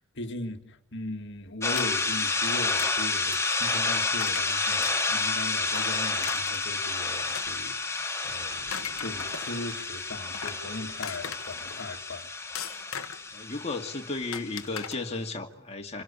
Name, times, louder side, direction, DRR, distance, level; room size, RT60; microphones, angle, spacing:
voice 1, 0.0-12.6, left 2 dB, 55° left, 2.0 m, -39 dB
sound 1, 1.6-15.0, left 3 dB, 15° left, 2.6 m, -30 dB
sound 2, 1.8-2.2 2.8-3.0 3.3-3.6 4.2-4.5 4.8-5.2 5.7-6.8 7.3-8.0 8.5-9.6 10.1-10.6 11.0-11.7 12.6-13.3 14.3-14.9, left 8 dB, 75° left, 1.5 m, -38 dB
voice 2, 13.3-16.0, left 3 dB, 30° left, 2.3 m, -34 dB
27.5 x 22.0 x 8.5 m
head